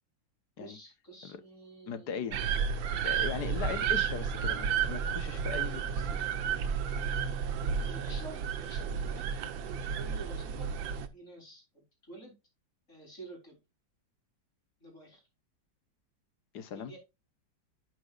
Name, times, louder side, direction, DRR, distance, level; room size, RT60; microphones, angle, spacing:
voice 1, 0.6-2.3 7.9-10.7 11.1-12.3 12.9-13.6 14.8-15.2 16.7-17.0, right 2 dB, 40° left, 4.3 m, -49 dB
voice 2, 1.9-2.4 3.0-6.3 16.5-16.9, left 7 dB, 60° left, 1.5 m, -39 dB
sound 1, 2.3-11.1, right 7 dB, 80° right, 1.6 m, -32 dB
11.5 x 6.2 x 2.4 m
omnidirectional pair, 2.0 m